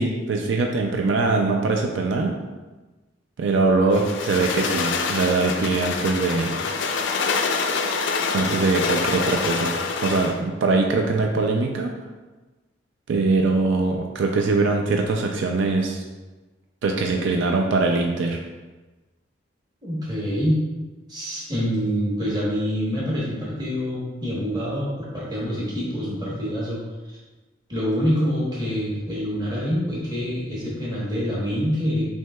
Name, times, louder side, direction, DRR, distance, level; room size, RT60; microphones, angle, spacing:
voice 1, 0.0-2.3 3.4-6.6 8.3-9.7 10.0-11.9 13.1-16.0 16.8-18.4, right 3 dB, 75° right, 2 dB, 0.4 m, -22 dB
sound 1, 3.9-10.4, left 4 dB, 70° left, 0.4 m, -26 dB
voice 2, 19.8-20.6 21.1-27.2 27.7-32.1, equal, 20° right, -6 dB, 1.1 m, -26 dB
6.0 x 2.8 x 2.2 m, 1.2 s
head